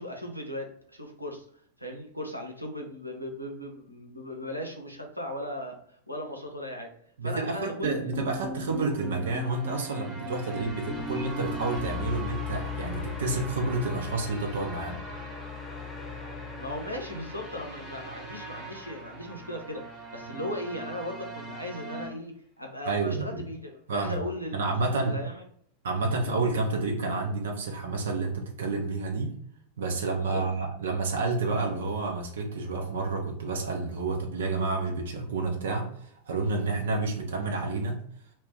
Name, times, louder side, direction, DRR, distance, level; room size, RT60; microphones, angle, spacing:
voice 1, 0.0-1.4 1.8-6.9 7.2-8.1 16.6-24.7 25.0-25.4 26.1-26.2 30.2-30.4 36.8-36.9, left 1 dB, 90° left, 1 dB, 0.6 m, -37 dB
voice 2, 7.2-15.0 22.9-23.4 23.9-24.2 24.5-25.2 25.8-29.4 29.8-38.0, right 3 dB, 60° right, 3 dB, 0.5 m, -29 dB
sound 1, 7.8-20.0, left 4 dB, 15° left, 0.6 m, -39 dB
sound 2, 8.6-22.1, right 2 dB, 20° right, 1.0 m, -43 dB
2.4 x 2.1 x 3.6 m, 0.64 s
figure-of-eight pair, 90°, 0 cm